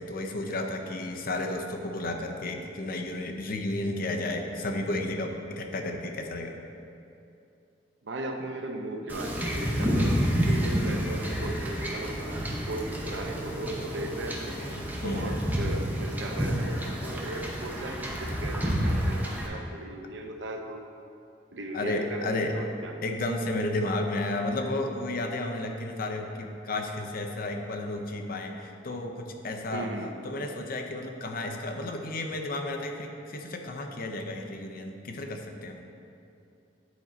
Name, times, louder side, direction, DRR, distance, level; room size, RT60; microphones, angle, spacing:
voice 1, 0.0-6.5 15.0-15.4 21.7-22.6 23.0-29.9 30.2-35.8, left 2 dB, 55° left, 3 dB, 0.7 m, -32 dB
voice 2, 8.0-14.6 15.0-20.8 21.5-22.9 29.7-30.2, right 1 dB, 85° right, 3 dB, 0.7 m, -37 dB
Wind / Ocean / Boat Water vehicle, 9.1-19.5, equal, 10° right, 0.8 m, -29 dB
9.8 x 3.9 x 4.3 m, 2.6 s
head